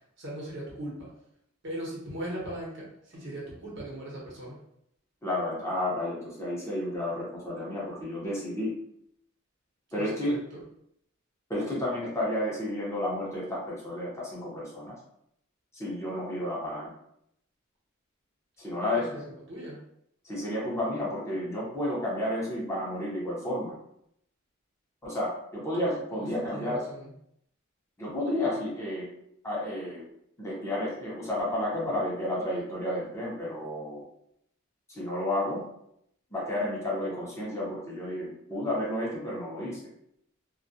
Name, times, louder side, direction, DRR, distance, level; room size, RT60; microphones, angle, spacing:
voice 1, 0.2-1.1 1.6-4.6 9.9-10.6 18.8-19.2 19.5-19.8 26.5-27.1, right 1 dB, 60° right, -5 dB, 0.9 m, -39 dB
voice 2, 5.2-8.7 9.9-10.3 11.5-15.0 15.7-16.9 18.6-19.1 20.2-23.8 25.0-26.9 28.0-29.1 29.4-30.0 30.4-34.1 34.9-35.6 36.3-39.8, left 1 dB, 15° left, -6 dB, 0.6 m, -31 dB
2.3 x 2.1 x 2.6 m, 0.74 s
head